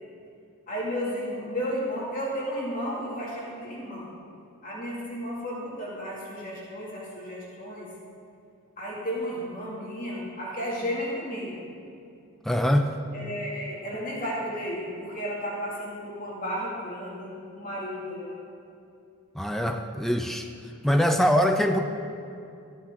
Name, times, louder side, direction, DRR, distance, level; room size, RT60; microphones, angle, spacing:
voice 1, 0.7-4.1 4.6-7.9 8.8-11.6 13.1-18.4, equal, 40° left, -6 dB, 2.3 m, -33 dB
voice 2, 12.5-12.9 19.4-20.5 20.8-21.8, equal, ahead, 4 dB, 0.4 m, -23 dB
14.0 x 10.0 x 3.7 m, 2.6 s
head